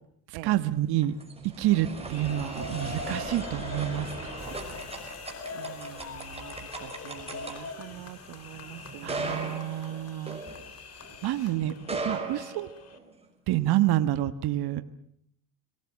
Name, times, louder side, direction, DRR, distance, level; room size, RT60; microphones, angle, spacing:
voice 1, 0.3-1.1 1.6-4.5 9.0-10.4 11.2-11.7 12.0-12.7 13.5-14.8, right 14 dB, 55° right, 11 dB, 1.4 m, -28 dB
sound 1, 0.8-11.1 11.7-13.2, right 3 dB, 15° right, 5.9 m, -38 dB
sound 2, 1.9-13.0, left 5 dB, 30° left, 3.2 m, -42 dB
sound 3, 4.4-11.5, left 6 dB, 60° left, 8.0 m, -56 dB
voice 2, 5.5-9.5 11.6-11.9, right 12 dB, 75° right, 12 dB, 1.6 m, -45 dB
26.0 x 19.0 x 7.5 m, 0.70 s
supercardioid pair, 100°, 46 cm